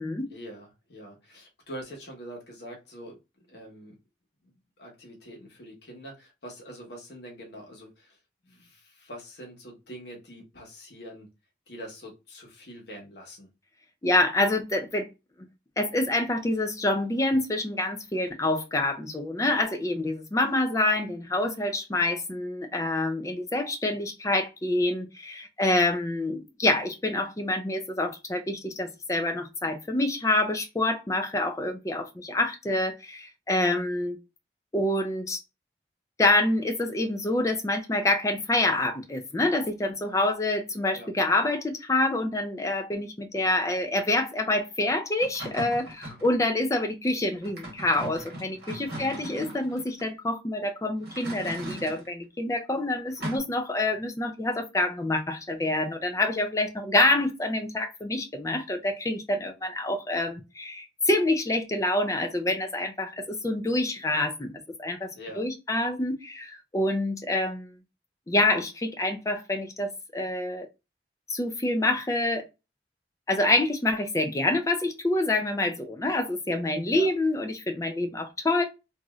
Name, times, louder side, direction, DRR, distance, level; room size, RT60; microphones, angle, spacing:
voice 1, 0.3-3.2 3.5-4.0 4.4-11.3 11.7-13.5 40.9-41.1 48.8-49.3 65.1-65.4 76.9-77.1, equal, 70° left, 1.1 m, -44 dB
voice 2, 14.0-15.1 15.8-34.2 34.7-35.4 36.2-65.1 65.4-67.7 68.3-70.7 71.3-72.5 73.3-78.6, left 2 dB, 15° left, 0.4 m, -27 dB
sound 1, 45.2-46.4 47.4-50.0 51.0-52.1 53.2-53.4, right 1 dB, 55° right, 1.1 m, -39 dB
3.0 x 2.6 x 2.3 m
head